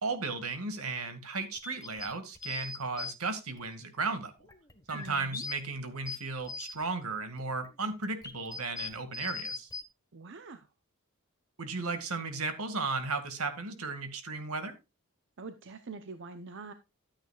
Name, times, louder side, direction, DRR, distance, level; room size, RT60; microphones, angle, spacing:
voice 1, 0.0-4.3 4.9-9.7 11.6-14.8, right 3 dB, 80° right, 2.1 m, -35 dB
sound 1, 1.5-3.1 3.6-3.7 4.4-5.5 5.9-6.8 7.4-9.8, left 4 dB, 15° left, 1.3 m, -40 dB
voice 2, 4.9-5.4 10.1-10.7 15.4-16.7, right 3 dB, 55° right, 0.8 m, -44 dB
12.5 x 9.3 x 2.4 m
head